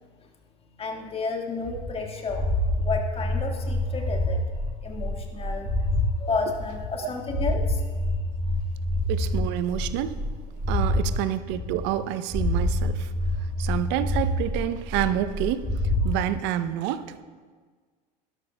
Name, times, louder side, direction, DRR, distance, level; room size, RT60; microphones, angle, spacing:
voice 1, 0.8-2.5 2.8-4.4 4.8-5.7 6.2-7.8 10.8-11.2, left 4 dB, 25° left, 2 dB, 1.6 m, -31 dB
sound 1, 1.6-6.1 6.5-11.1 11.5-12.0 12.3-16.1, left 1 dB, 10° right, 2.5 m, -27 dB
voice 2, 9.1-10.2 10.7-13.1 13.6-15.6 16.0-17.0, right 12 dB, 55° right, 12 dB, 0.6 m, -28 dB
12.0 x 12.0 x 2.2 m, 1.5 s
hypercardioid pair, 85°, 21 cm